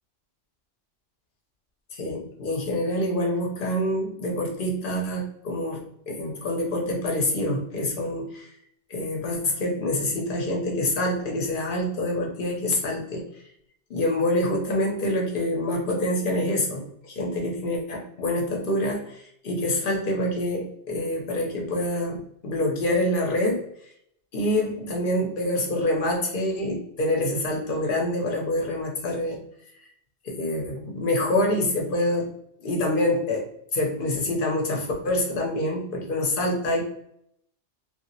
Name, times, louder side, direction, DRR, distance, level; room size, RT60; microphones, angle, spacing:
voice 1, 1.9-8.5 8.9-13.3 13.9-23.7 24.3-29.4 30.2-32.3 32.6-33.5 33.7-36.8, left 1 dB, 55° left, 0 dB, 0.8 m, -26 dB
2.8 x 2.5 x 2.7 m, 0.73 s
omnidirectional pair, 1.2 m